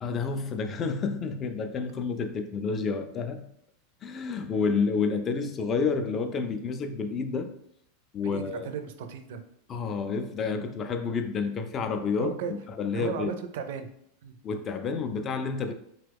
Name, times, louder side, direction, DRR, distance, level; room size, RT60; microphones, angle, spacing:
voice 1, 0.0-3.4 4.0-7.6 8.1-8.7 9.7-13.3 14.4-15.7, left 5 dB, 25° left, 0.3 m, -29 dB
voice 2, 8.3-9.4 12.2-12.5 12.9-13.9 14.2-14.4, right 6 dB, 70° right, 0.4 m, -35 dB
3.0 x 2.2 x 3.4 m
supercardioid pair, 135°, 0 cm